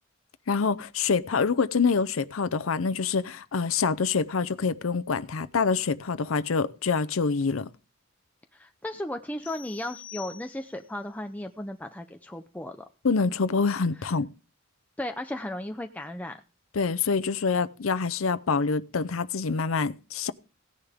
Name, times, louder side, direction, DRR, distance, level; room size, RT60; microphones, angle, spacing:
voice 1, 0.5-7.7 13.0-14.3 16.7-20.3, left 5 dB, 85° left, 0.6 m, -26 dB
voice 2, 8.5-12.9 15.0-16.4, left 1 dB, 10° left, 0.6 m, -35 dB
sound 1, 9.4-11.0, left 10 dB, 40° left, 2.8 m, -46 dB
16.5 x 10.0 x 3.6 m
head